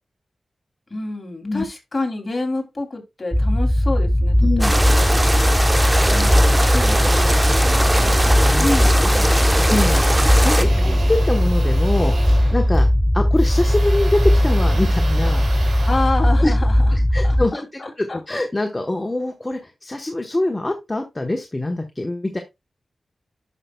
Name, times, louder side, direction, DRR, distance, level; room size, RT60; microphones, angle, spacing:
voice 1, 0.9-4.8 6.1-7.9 8.6-9.8 10.6-11.0 15.8-16.9 17.2-18.2, left 2 dB, 40° left, 3.0 m, -28 dB
sound 1, 3.3-17.5, left 1 dB, ahead, 0.4 m, -18 dB
voice 2, 4.4-4.7 8.1-8.2 8.4-8.6 9.7-10.1 10.4-12.1 12.5-12.9 13.1-15.7 16.4-16.5 16.9-22.4, left 2 dB, 25° left, 1.2 m, -24 dB
sound 2, 4.6-10.7, right 1 dB, 15° right, 1.0 m, -21 dB
sound 3, 4.7-16.9, right 3 dB, 85° right, 2.5 m, -32 dB
10.5 x 5.8 x 2.3 m
cardioid pair, 60°, 0 cm